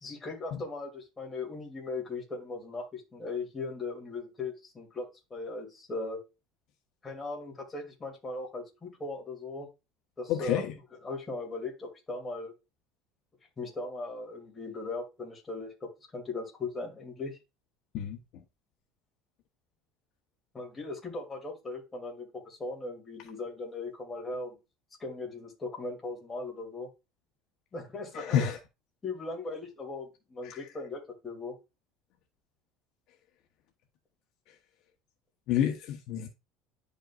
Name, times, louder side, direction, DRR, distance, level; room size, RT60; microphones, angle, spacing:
voice 1, 0.0-6.2 7.0-9.7 10.2-10.6 11.0-12.5 13.6-17.4 20.5-24.6 25.0-26.9 27.7-28.4 29.0-31.5, left 3 dB, 15° left, 2.6 m, -38 dB
voice 2, 10.3-10.7 17.9-18.2 28.1-28.6 30.4-30.7 35.5-36.3, left 10 dB, 50° left, 0.9 m, -29 dB
10.5 x 5.3 x 2.4 m
cardioid pair, 170°, 0 cm